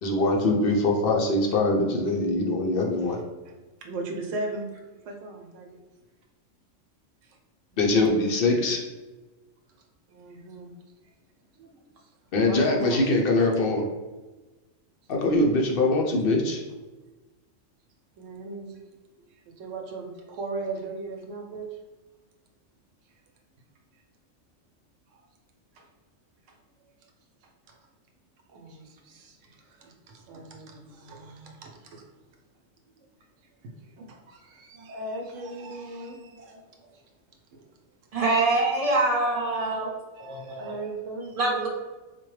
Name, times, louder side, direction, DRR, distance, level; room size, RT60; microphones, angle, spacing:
voice 1, 0.0-3.2 7.8-8.8 12.3-13.8 15.1-16.6, left 2 dB, 60° left, 1 dB, 0.7 m, -23 dB
voice 2, 3.8-5.7 7.7-8.0 10.1-10.7 11.6-11.7 12.5-13.0 15.6-15.8 18.2-18.7 19.6-21.7 25.8-25.9 28.5-29.4 29.8-32.0 34.0-36.6 40.1-41.7, right 2 dB, 75° right, 1 dB, 0.9 m, -38 dB
voice 3, 38.1-39.9 40.2-40.7 41.4-41.7, right 2 dB, 35° right, -1 dB, 0.6 m, -25 dB
4.4 x 2.2 x 3.1 m, 1.2 s
omnidirectional pair, 1.3 m